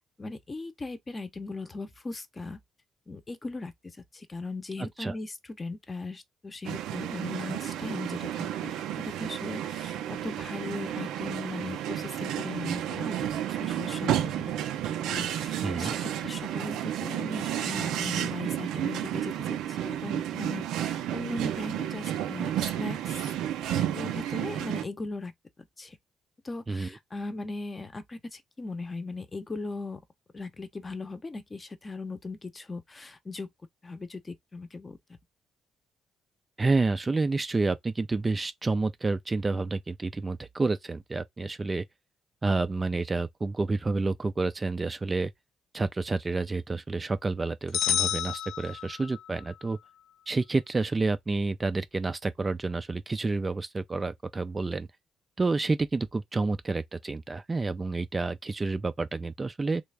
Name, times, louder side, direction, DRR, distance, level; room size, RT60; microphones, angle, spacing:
voice 1, 0.2-2.6 3.1-14.5 15.0-23.2 23.7-26.0 26.4-30.0 30.3-33.5 33.8-35.0, left 3 dB, 25° left, 0.7 m, -38 dB
sound 1, 6.6-24.8, right 11 dB, 90° right, 0.5 m, -32 dB
voice 2, 15.6-15.9 26.7-26.9 36.6-41.8 42.4-45.3 45.7-49.8 50.3-54.9 55.4-59.8, right 3 dB, 25° right, 0.3 m, -29 dB
sound 2, 47.7-49.3, left 10 dB, 80° left, 0.3 m, -29 dB
3.2 x 2.4 x 3.3 m
cardioid pair, 90°, 0 cm